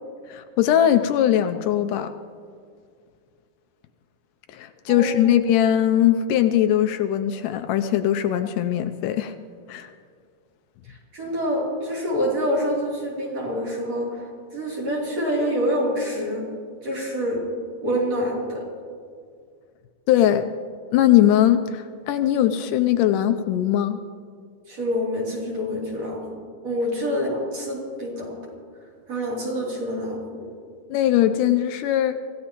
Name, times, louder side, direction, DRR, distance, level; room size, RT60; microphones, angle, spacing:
voice 1, 0.3-2.1 4.5-9.3 9.7-9.9 20.1-20.5 20.9-24.0 30.9-32.2, left 11 dB, 80° left, 8 dB, 2.0 m, -20 dB
voice 2, 4.9-5.3 10.9-14.3 14.5-16.5 16.8-17.4 17.8-18.6 24.7-26.4 26.6-28.4 29.1-30.5, equal, 50° right, -3 dB, 4.0 m, -26 dB
25.0 x 16.0 x 3.0 m, 2.2 s
omnidirectional pair, 3.9 m